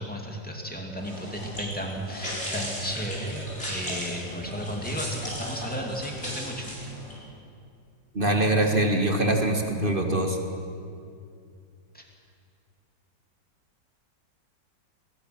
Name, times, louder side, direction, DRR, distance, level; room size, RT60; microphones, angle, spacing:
voice 1, 0.0-3.4 3.7-6.8 11.9-12.0, equal, 5° left, 0 dB, 2.6 m, -33 dB
sound 1, 1.0-7.2, left 1 dB, 35° left, 5.3 m, -37 dB
voice 2, 8.1-10.4, right 1 dB, 30° right, 3 dB, 1.7 m, -23 dB
22.0 x 19.0 x 6.1 m, 2.4 s
omnidirectional pair, 2.0 m